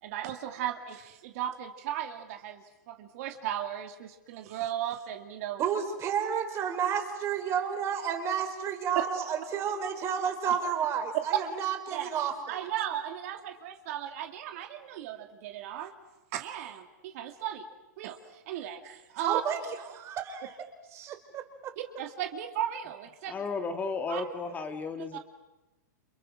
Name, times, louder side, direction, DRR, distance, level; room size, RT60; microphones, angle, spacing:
voice 1, 0.0-5.6 11.3-11.6 11.9-12.2 12.5-15.9 16.3-17.7 18.0-19.4 21.8-23.4 24.1-24.2 25.1-25.2, right 11 dB, 50° right, 6 dB, 2.3 m, -36 dB
voice 2, 5.6-12.7 19.2-20.5 20.9-21.7 24.1-24.3, right 8 dB, 30° right, 6 dB, 4.3 m, -31 dB
voice 3, 23.3-25.2, left 4 dB, 15° left, 6 dB, 1.8 m, -34 dB
30.0 x 28.5 x 6.3 m, 1.0 s
hypercardioid pair, 135°, 10 cm